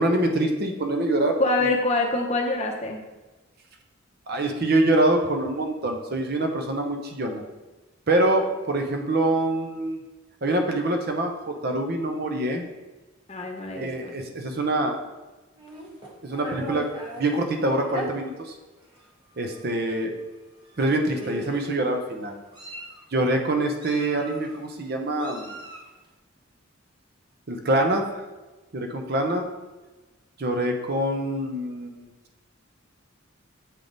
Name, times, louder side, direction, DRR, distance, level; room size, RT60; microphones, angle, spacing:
voice 1, 0.0-1.7 4.3-7.4 8.1-10.0 10.4-12.6 13.7-15.0 16.2-16.9 17.2-18.3 19.4-20.1 20.8-22.4 23.1-25.6 27.5-28.1 28.7-29.5 30.4-32.1, right 1 dB, 50° right, 4 dB, 0.7 m, -25 dB
voice 2, 1.4-3.0 13.3-14.1, left 2 dB, 30° left, 2 dB, 0.7 m, -25 dB
Meow, 15.6-17.2 17.9-18.1 18.9-19.1 19.4-19.6 20.7-20.8 21.1-21.7 22.3-23.0 23.8-24.6 25.2-25.9, right 1 dB, 20° right, 1.0 m, -37 dB
7.3 x 3.5 x 3.9 m, 1.2 s
head